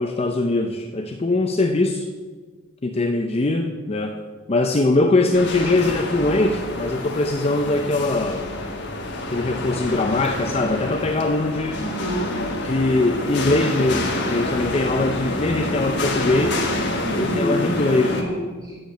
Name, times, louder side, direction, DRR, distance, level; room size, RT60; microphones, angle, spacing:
voice 1, 0.0-2.1 2.8-4.2 4.5-8.5 9.3-11.8 12.6-16.6 17.2-18.2, left 2 dB, 30° left, 4 dB, 0.5 m, -21 dB
sound 1, 5.3-18.2, left 2 dB, 50° left, 1.3 m, -27 dB
voice 2, 11.8-12.4 17.0-18.8, equal, 15° right, -4 dB, 3.6 m, -28 dB
7.8 x 6.7 x 7.8 m, 1.4 s
head